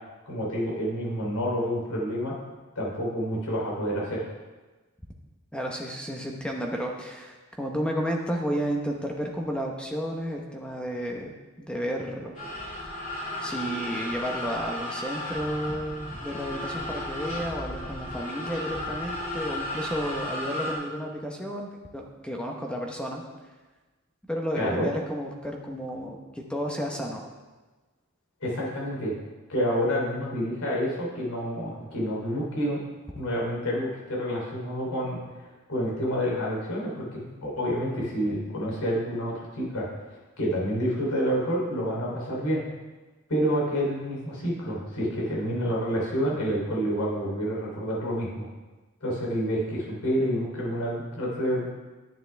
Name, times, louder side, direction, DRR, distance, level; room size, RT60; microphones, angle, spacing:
voice 1, 0.3-2.3 2.7-4.2 24.6-24.9 28.4-29.1 29.5-32.8 33.1-35.2 35.7-39.9 40.4-42.6 43.3-48.5 49.0-51.7, equal, 90° left, -4 dB, 3.3 m, -28 dB
voice 2, 5.5-11.3 11.6-12.3 12.6-12.8 13.4-23.2 24.3-26.2 26.5-27.2, equal, 5° left, 0 dB, 0.9 m, -32 dB
sound 1, 12.3-20.7, left 1 dB, 35° left, 2.3 m, -34 dB
10.5 x 9.4 x 3.4 m, 1.2 s
head